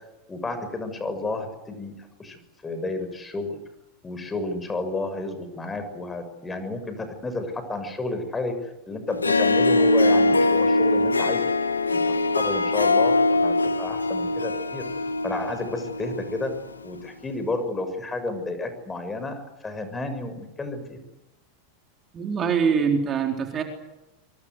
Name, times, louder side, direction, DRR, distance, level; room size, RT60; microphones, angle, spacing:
voice 1, 0.3-3.6 4.0-8.5 8.9-11.4 11.9-14.8 15.2-16.5 16.8-21.0, left 2 dB, 15° left, 9 dB, 6.5 m, -31 dB
Harp, 9.1-16.5, left 2 dB, 85° left, 1.9 m, -22 dB
voice 2, 22.1-23.6, right 6 dB, 30° right, 4 dB, 4.1 m, -23 dB
25.0 x 24.0 x 8.1 m, 0.96 s
figure-of-eight pair, 90°, 0 cm